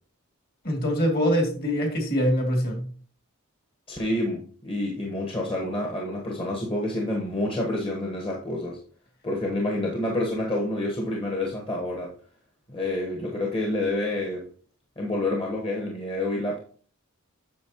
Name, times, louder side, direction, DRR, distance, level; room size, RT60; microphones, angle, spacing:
voice 1, 0.6-2.8, equal, 45° left, 2.5 m, -24 dB
voice 2, 3.9-8.8 9.2-12.1 12.7-14.5 15.0-16.6, left 1 dB, 25° left, 1.2 m, -28 dB
8.7 x 6.4 x 2.9 m
head